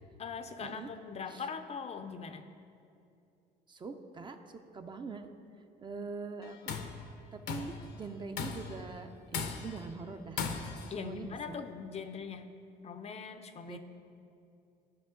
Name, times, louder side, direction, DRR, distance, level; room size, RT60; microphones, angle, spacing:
voice 1, 0.2-2.5 10.9-12.5 12.8-13.8, left 6 dB, 40° left, 9 dB, 0.5 m, -41 dB
voice 2, 3.7-5.3 5.8-6.8 7.3-10.4 11.0-11.6 13.7-13.8, right 4 dB, 25° right, 6 dB, 0.5 m, -43 dB
Tools, 6.4-7.0 7.5-7.8 8.4-8.8 9.3-9.9 10.4-10.9, left 6 dB, 75° left, 0.7 m, -37 dB
12.5 x 5.5 x 3.8 m, 2.5 s
cardioid pair, 110°, 17 cm